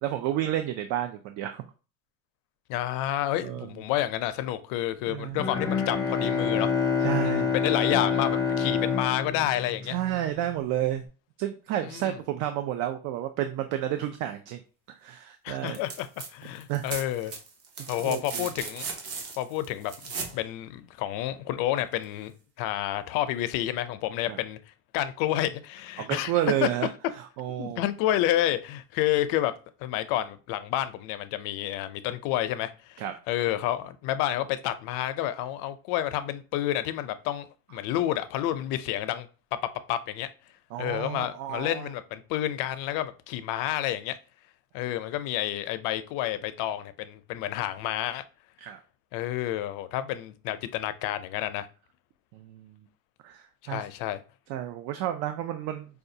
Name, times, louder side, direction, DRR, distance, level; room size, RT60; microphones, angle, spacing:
voice 1, 0.0-1.6 3.4-3.7 5.1-5.4 7.0-7.5 9.9-11.0 11.4-14.6 14.9-15.8 16.7-16.8 18.0-18.5 24.3-24.4 26.0-26.9 27.2-27.8 33.0-33.1 40.7-41.9 48.6-48.8 52.3-52.8 53.2-53.8 54.5-55.9, right 12 dB, 65° right, 0.5 m, -31 dB
voice 2, 2.7-6.7 7.2-9.9 11.8-12.2 15.4-17.3 17.9-18.9 19.4-19.9 20.3-22.3 22.6-24.6 24.9-26.3 26.6-26.7 27.6-29.5 29.8-39.3 39.9-40.3 40.8-44.2 44.7-48.2 49.1-51.7 53.6-54.2, left 13 dB, 75° left, 0.5 m, -29 dB
Bowed string instrument, 5.4-10.3, left 6 dB, 10° left, 0.5 m, -27 dB
sound 1, 15.7-16.3 16.6-20.4 22.0-22.1, right 5 dB, 45° right, 0.8 m, -37 dB
4.8 x 2.3 x 2.7 m
cardioid pair, 155°, 34 cm